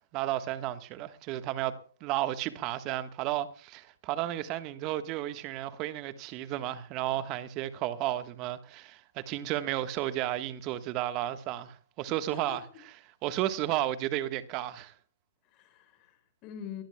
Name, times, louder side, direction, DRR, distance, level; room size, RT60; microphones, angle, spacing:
voice 1, 0.1-12.6 13.2-14.9, right 13 dB, 30° right, 1.4 m, -33 dB
voice 2, 12.3-12.8 15.4-16.8, left 9 dB, 30° left, 5.3 m, -45 dB
23.5 x 19.0 x 2.3 m
figure-of-eight pair, 130°, 0 cm